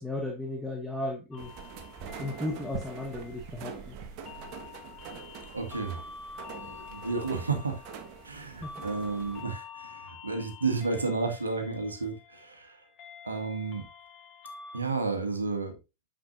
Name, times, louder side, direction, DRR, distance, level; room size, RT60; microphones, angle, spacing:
voice 1, 0.0-1.5 2.2-4.0 8.6-8.8, left 1 dB, 5° left, 1.4 m, -35 dB
sound 1, 1.3-14.8, left 5 dB, 30° left, 1.3 m, -48 dB
sound 2, 1.4-9.4, right 6 dB, 45° right, 1.5 m, -44 dB
voice 2, 5.5-6.0 6.6-7.8 8.2-12.8 13.2-13.8 14.7-15.8, right 4 dB, 75° right, 1.8 m, -32 dB
10.0 x 6.9 x 2.6 m
figure-of-eight pair, 90°, 0 cm